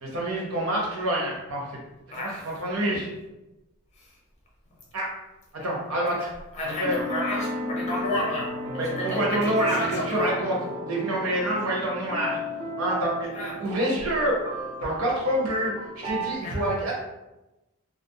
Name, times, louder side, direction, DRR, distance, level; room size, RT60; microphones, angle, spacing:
voice 1, 0.0-1.8 2.1-2.3 2.6-3.1 4.9-5.1 5.5-6.3 6.6-7.0 8.8-10.5 10.9-12.4 12.8-13.3 13.6-14.4 14.8-16.9, right 1 dB, 75° right, -3 dB, 0.8 m, -27 dB
voice 2, 2.1-2.4 2.8-2.9 4.0-4.2 6.1-10.3 13.3-13.6 16.4-16.6, left 1 dB, 30° left, -3 dB, 0.6 m, -32 dB
sound 1, 6.8-16.4, equal, 25° right, 0.3 m, -34 dB
2.4 x 2.0 x 2.7 m, 1.0 s
head